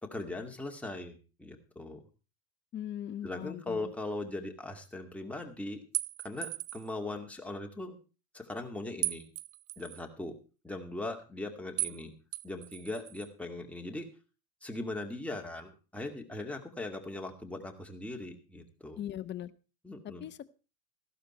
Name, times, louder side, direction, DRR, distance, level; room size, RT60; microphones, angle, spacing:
voice 1, 0.0-2.0 3.2-5.8 6.2-8.0 8.3-9.2 9.8-10.4 10.6-12.1 12.4-14.1 14.6-19.0 19.8-20.3, left 2 dB, 5° left, 2 dB, 2.3 m, -39 dB
voice 2, 2.7-3.9 18.9-19.5 20.0-20.5, left 11 dB, 25° left, 13 dB, 0.8 m, -40 dB
sound 1, 5.9-6.9 9.0-10.0 11.8-12.0 12.3-13.3, right 19 dB, 55° right, 0.6 m, -36 dB
14.5 x 12.0 x 4.4 m, 0.34 s
hypercardioid pair, 95°, 46 cm